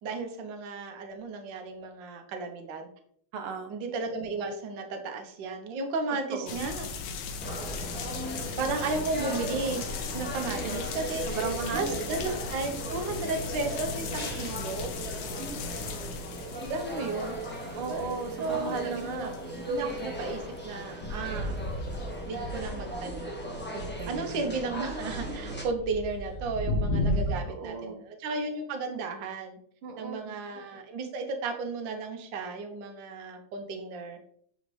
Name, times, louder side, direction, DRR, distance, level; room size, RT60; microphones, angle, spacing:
voice 1, 0.0-2.9 3.7-6.9 8.6-11.4 11.7-14.9 16.7-17.4 17.9-18.1 18.4-19.3 19.7-21.6 22.2-23.4 24.1-29.6 30.0-34.2, right 3 dB, 65° right, 5 dB, 1.6 m, -34 dB
voice 2, 3.3-3.7 6.3-6.7 10.6-10.8 11.3-12.0 15.4-15.6 17.8-19.3 23.7-24.4 27.5-28.0 29.8-30.4, right 5 dB, 85° right, 5 dB, 1.9 m, -36 dB
sound 1, 6.5-20.2 20.6-20.7 21.3-21.7 21.9-22.0, left 4 dB, 90° left, 1.7 m, -38 dB
sound 2, 7.4-25.6, equal, 5° left, 1.0 m, -38 dB
sound 3, 21.0-23.3 23.6-27.4, equal, 70° left, 1.9 m, -33 dB
9.2 x 4.3 x 3.2 m, 0.62 s
omnidirectional pair, 2.3 m